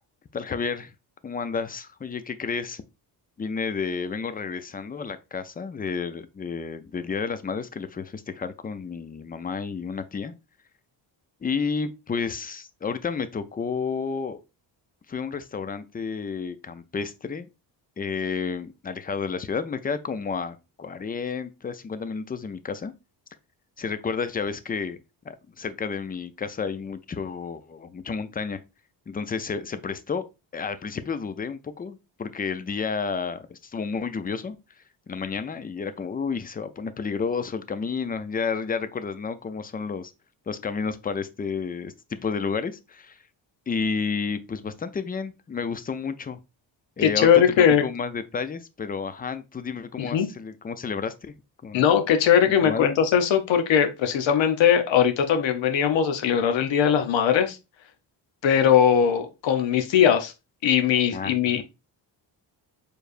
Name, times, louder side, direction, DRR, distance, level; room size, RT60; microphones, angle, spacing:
voice 1, 0.3-0.9 1.2-2.8 3.4-10.3 11.4-14.4 15.1-17.5 18.0-22.9 23.8-25.0 25.2-28.6 29.1-30.3 30.5-34.6 35.1-40.1 40.5-43.2 43.7-46.4 47.0-51.4 51.6-51.8 52.6-53.0 61.1-61.6, left 5 dB, 20° left, 0.4 m, -31 dB
voice 2, 47.0-47.8 50.0-50.3 51.7-57.6 58.4-60.3 60.6-61.6, left 8 dB, 80° left, 0.8 m, -20 dB
4.6 x 3.3 x 2.5 m
cardioid pair, 95°, 44 cm